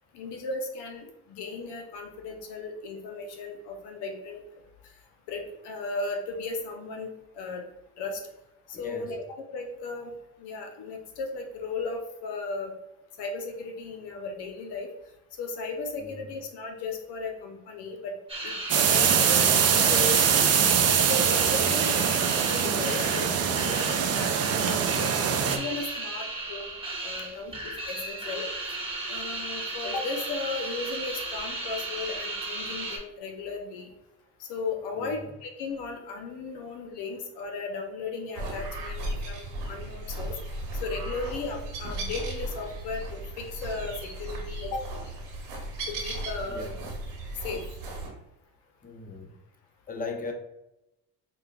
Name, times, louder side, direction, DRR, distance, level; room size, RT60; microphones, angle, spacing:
voice 1, 0.1-4.4 5.3-7.1 7.3-7.6 8.0-8.2 8.7-9.2 9.5-10.1 10.4-12.7 13.2-14.9 15.4-18.1 18.4-20.5 21.1-22.0 22.5-26.7 27.0-28.4 29.1-33.9 34.4-40.4 40.8-44.8 45.9-46.7 47.4-47.6, left 3 dB, 70° left, 3 dB, 0.7 m, -36 dB
voice 2, 8.7-9.1 16.0-16.2 21.6-22.2 27.2-27.3 35.0-35.1 46.5-46.8 48.8-49.3 49.9-50.3, left 3 dB, 20° left, 3 dB, 0.8 m, -38 dB
sound 1, 18.3-33.0, right 2 dB, 15° right, 1.2 m, -35 dB
sound 2, 18.7-25.6, right 7 dB, 40° right, 0.5 m, -23 dB
sound 3, 38.3-48.1, right 1 dB, 85° right, 1.2 m, -36 dB
5.0 x 2.3 x 2.3 m, 0.91 s
supercardioid pair, 65°, 41 cm